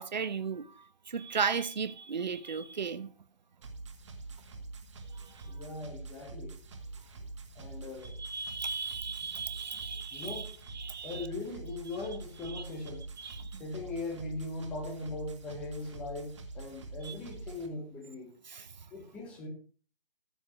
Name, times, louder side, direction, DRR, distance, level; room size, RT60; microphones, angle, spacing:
voice 1, 0.0-3.1 5.1-5.5 8.2-11.3 12.4-12.6 13.2-13.6 17.0-17.2 18.5-18.8, right 5 dB, 50° right, 1.0 m, -36 dB
sound 1, 3.6-17.7, right 3 dB, 30° right, 1.8 m, -45 dB
voice 2, 5.5-6.6 7.5-8.2 10.1-10.5 11.0-13.1 13.6-18.3 18.9-19.5, left 2 dB, 5° left, 1.0 m, -40 dB
14.5 x 5.4 x 6.3 m
figure-of-eight pair, 165°, 29 cm